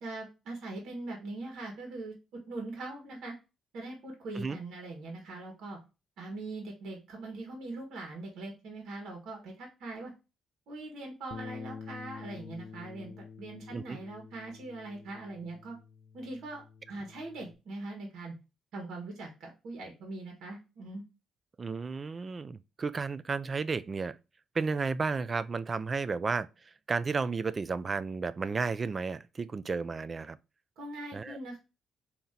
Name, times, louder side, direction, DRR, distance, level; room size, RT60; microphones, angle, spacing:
voice 1, 0.0-3.4 3.7-5.8 6.2-10.1 10.7-15.8 16.1-18.3 18.7-21.0 30.8-31.6, right 2 dB, 75° right, 1.4 m, -41 dB
Bass guitar, 11.3-17.6, left 5 dB, 50° left, 0.4 m, -48 dB
voice 2, 21.6-24.2 24.5-26.5 26.9-30.4 31.1-31.4, right 4 dB, 35° right, 0.3 m, -33 dB
3.7 x 2.9 x 4.2 m
cardioid pair, 100°, 0 cm